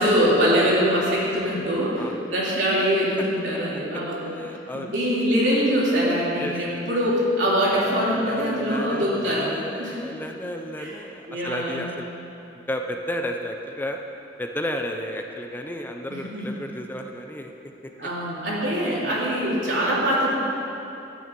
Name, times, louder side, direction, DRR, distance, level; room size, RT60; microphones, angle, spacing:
voice 1, 0.0-4.3 4.7-9.5 9.8-10.0 10.8-10.9 11.3-11.9 16.1-16.4 18.0-20.3, equal, 85° right, -6 dB, 3.2 m, -23 dB
voice 2, 4.2-4.9 6.4-6.8 7.8-12.1 12.7-14.0 14.4-17.5 17.8-17.9 19.0-19.2, equal, 10° left, 3 dB, 0.5 m, -33 dB
12.5 x 9.2 x 5.3 m, 2.9 s
head